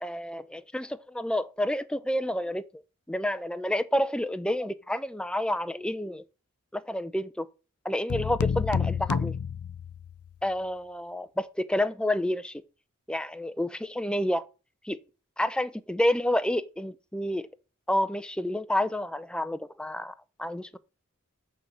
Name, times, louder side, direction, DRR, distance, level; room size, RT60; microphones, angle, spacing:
voice 1, 0.0-2.6 3.1-6.2 6.7-7.4 7.8-9.3 10.4-12.6 13.1-14.5 14.8-15.0 15.4-17.4 17.9-20.1 20.4-20.8, left 1 dB, 5° left, 0.5 m, -29 dB
sound 1, 8.1-10.3, left 6 dB, 85° left, 0.4 m, -29 dB
9.1 x 3.9 x 7.2 m
head